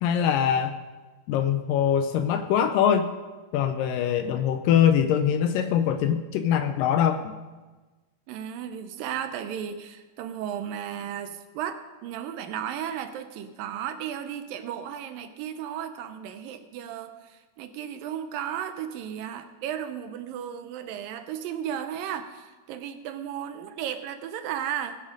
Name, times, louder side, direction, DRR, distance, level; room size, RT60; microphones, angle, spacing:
voice 1, 0.0-0.8 1.3-3.1 3.5-7.3, left 9 dB, 80° left, 9 dB, 2.1 m, -23 dB
voice 2, 8.3-25.0, right 9 dB, 80° right, 9 dB, 2.3 m, -34 dB
19.5 x 7.4 x 5.2 m, 1.3 s
omnidirectional pair, 4.3 m